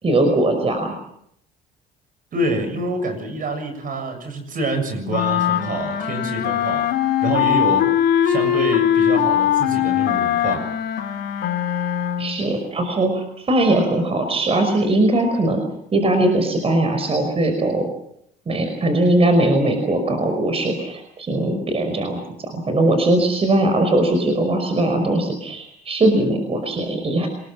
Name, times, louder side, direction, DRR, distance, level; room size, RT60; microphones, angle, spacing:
voice 1, 0.0-0.9 12.2-15.6 15.9-17.8 18.5-27.3, right 1 dB, 35° right, 6 dB, 5.5 m, -20 dB
voice 2, 2.3-6.9 7.2-7.9 8.2-10.7, right 2 dB, 50° right, 8 dB, 7.2 m, -26 dB
sound 1, 5.1-12.4, left 10 dB, 70° left, 3.2 m, -20 dB
27.0 x 20.5 x 7.5 m, 0.73 s
cardioid pair, 95°, 18 cm